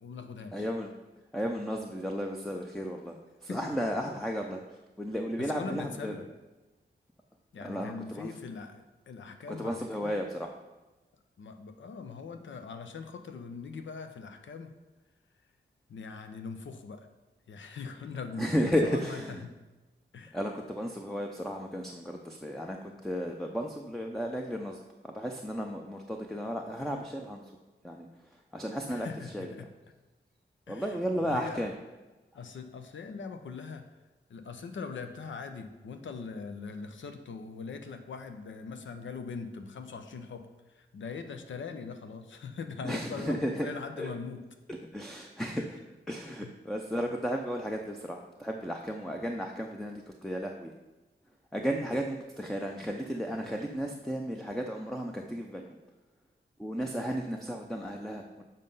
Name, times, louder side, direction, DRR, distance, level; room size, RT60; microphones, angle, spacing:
voice 1, 0.0-0.6 3.5-3.8 5.4-6.2 7.5-10.1 11.4-14.7 15.9-17.1 17.5-19.6 20.1-20.4 28.9-29.7 30.7-31.6 32.3-34.0 34.3-44.4 45.6-45.7 46.3-46.5, left 5 dB, 85° left, 7 dB, 0.7 m, -41 dB
voice 2, 0.5-0.9 1.3-4.6 5.0-6.1 7.6-8.3 9.6-10.5 18.4-19.4 20.3-24.8 25.0-27.4 27.8-28.1 28.3-29.1 29.3-29.5 30.7-31.7 42.8-43.7 44.0-44.1 44.7-45.8 46.1-50.7 51.5-55.8 56.6-58.4, equal, ahead, 2 dB, 0.5 m, -34 dB
7.6 x 5.4 x 5.4 m, 1.1 s
wide cardioid pair, 160°, 19 cm